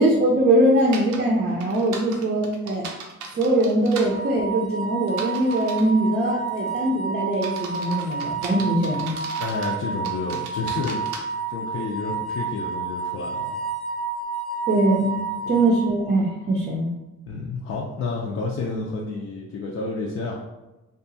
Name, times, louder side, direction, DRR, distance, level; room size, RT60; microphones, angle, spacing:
voice 1, 0.0-2.9 3.3-9.1 14.7-15.2 15.5-16.9, right 1 dB, 35° right, -3 dB, 0.5 m, -21 dB
sound 1, 0.9-1.2 1.6-4.1 5.1-5.9 6.5-6.8 7.3-9.7 10.0-11.2, right 4 dB, 90° right, 0.6 m, -37 dB
sound 2, 4.0-16.3, right 5 dB, ahead, 0.8 m, -30 dB
voice 2, 9.4-13.6 15.2-15.5 17.3-20.4, left 3 dB, 50° left, -3 dB, 0.5 m, -30 dB
2.7 x 2.3 x 2.7 m, 1.0 s
cardioid pair, 90°, 30 cm